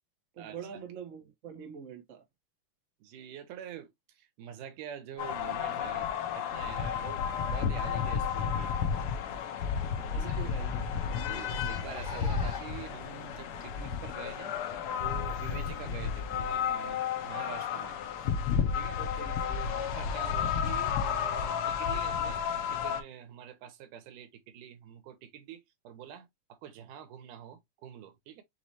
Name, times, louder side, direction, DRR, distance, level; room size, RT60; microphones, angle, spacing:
voice 1, 0.3-2.2 10.1-11.1 19.0-19.4, right 7 dB, 65° right, 0.7 m, -44 dB
voice 2, 3.0-3.9 4.2-6.1 6.4-8.8 10.1-10.5 11.2-18.0 18.7-19.0 19.4-22.4 22.7-28.4, right 9 dB, 85° right, 2.5 m, -46 dB
sound 1, 5.2-23.0, left 7 dB, 90° left, 1.2 m, -32 dB
Zipper (clothing), 9.7-9.8 10.1-10.2 10.9-12.9 13.6-13.7 14.7-14.8, left 5 dB, 35° left, 2.0 m, -44 dB
5.9 x 3.2 x 2.7 m
omnidirectional pair, 3.6 m